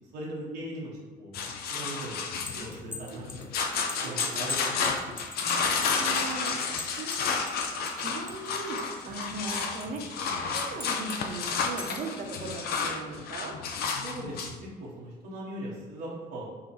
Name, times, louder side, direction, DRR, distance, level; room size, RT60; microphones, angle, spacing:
voice 1, 0.1-0.9 1.2-1.4 1.7-3.5 4.0-5.4 5.7-6.0 6.5-6.7 14.0-16.4, right 1 dB, 80° right, -5 dB, 1.1 m, -40 dB
sound 1, 1.3-14.6, left 5 dB, 65° left, 0.6 m, -31 dB
sound 2, 2.2-8.5 8.8-10.0 10.6-11.2 11.6-12.1, left 2 dB, 10° left, 0.5 m, -40 dB
voice 2, 2.5-2.8 3.1-3.2 4.0-4.6 5.8-6.6 7.0-13.5, right 3 dB, 50° right, 2 dB, 0.8 m, -39 dB
5.7 x 2.2 x 4.3 m, 1.4 s
cardioid pair, 110°, 17 cm